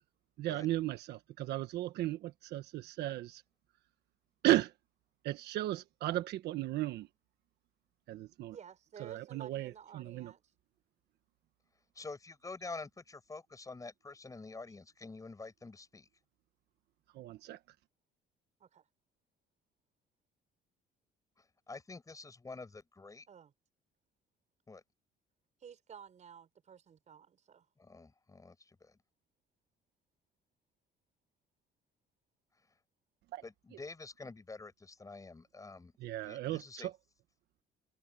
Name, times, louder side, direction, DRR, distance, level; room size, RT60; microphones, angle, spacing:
voice 1, 0.4-3.4 4.4-4.7 5.2-7.1 8.1-8.6 9.0-10.3 17.1-17.6 33.3-33.4 36.0-36.9, right 15 dB, 75° right, 1.3 m, -35 dB
voice 2, 8.5-10.4 18.6-18.9 23.3-23.5 25.6-27.7, right 8 dB, 45° right, 5.9 m, -53 dB
voice 3, 11.9-16.1 21.4-23.3 24.7-24.8 27.8-29.0 33.4-35.9 36.2-36.9, left 3 dB, 20° left, 7.6 m, -48 dB
cardioid pair, 110°, 17 cm